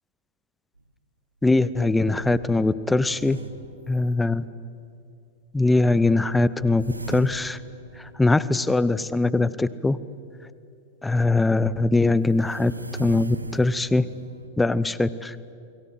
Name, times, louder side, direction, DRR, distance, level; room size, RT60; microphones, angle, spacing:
sound 1, 0.8-0.9 1.4-1.5 2.1-4.6 6.6-8.9 11.1-11.3 12.2-14.5, right 2 dB, 85° right, 1.2 m, -40 dB
voice 1, 1.4-3.4 3.9-4.5 5.5-7.6 8.0-10.0 11.0-12.7 13.0-14.1 14.6-15.4, left 2 dB, 10° left, 18 dB, 0.8 m, -21 dB
29.5 x 22.0 x 7.9 m, 2.5 s
figure-of-eight pair, 90°, 0 cm